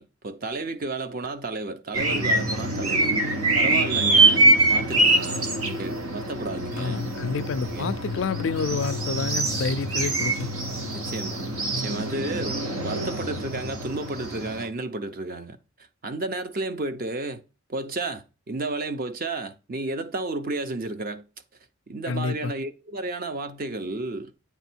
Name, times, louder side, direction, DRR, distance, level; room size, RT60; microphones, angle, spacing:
voice 1, 0.0-3.2 3.6-7.1 7.7-8.0 10.9-11.4 11.8-15.6 16.0-17.4 17.7-21.2 21.9-24.3, right 2 dB, 40° right, 0.6 m, -32 dB
sound 1, 1.9-14.7, right 2 dB, 85° right, 1.0 m, -24 dB
sound 2, 4.9-12.2, equal, 65° right, 3.4 m, -47 dB
voice 2, 6.8-10.5 22.1-22.5, left 4 dB, 60° left, 0.4 m, -28 dB
8.2 x 3.4 x 4.4 m
head